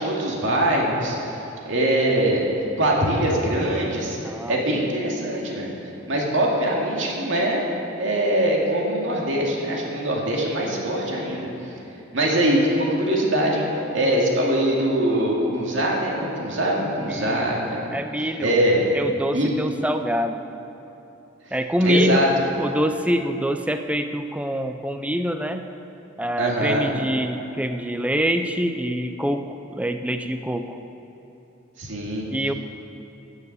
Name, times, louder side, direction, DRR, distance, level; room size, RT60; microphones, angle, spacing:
voice 1, 0.0-1.4 1.7-2.5 2.8-5.7 6.1-7.6 8.0-11.5 12.1-13.7 13.9-17.8 18.4-18.8 19.3-19.5 21.8-22.3 26.4-26.9 31.8-32.2, right 1 dB, 65° right, -2 dB, 2.3 m, -22 dB
voice 2, 4.2-4.6 17.1-17.5 17.9-18.5 18.9-20.4 21.5-22.3 22.6-25.7 26.2-30.8 32.3-32.5, equal, 5° right, 7 dB, 0.5 m, -25 dB
15.5 x 6.9 x 6.7 m, 2.9 s
head